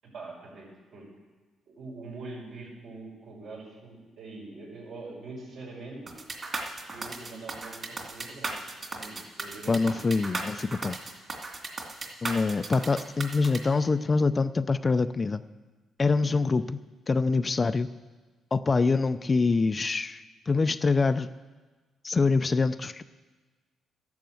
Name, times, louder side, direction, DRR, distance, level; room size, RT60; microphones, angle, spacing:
voice 1, 0.0-1.0 1.7-6.1 6.9-10.0 16.2-16.4, right 3 dB, 75° right, -3 dB, 6.0 m, -44 dB
sound 1, 6.1-13.6, right 3 dB, 35° right, 2.6 m, -36 dB
voice 2, 9.7-11.0 12.2-15.4 16.0-16.8 17.1-17.9 18.5-21.3 22.0-23.0, left 4 dB, 30° left, 12 dB, 0.5 m, -25 dB
12.5 x 11.0 x 7.8 m, 1.3 s
cardioid pair, 90°, 0 cm